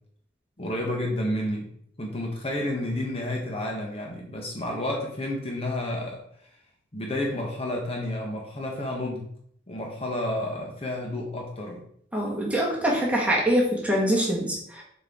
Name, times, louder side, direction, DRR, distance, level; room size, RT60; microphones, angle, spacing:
voice 1, 0.6-1.7 2.0-6.2 6.9-9.3 9.7-11.8, left 1 dB, 35° left, 0 dB, 1.0 m, -30 dB
voice 2, 12.1-14.8, equal, 5° right, -3 dB, 1.7 m, -24 dB
7.2 x 4.3 x 3.6 m, 0.67 s
head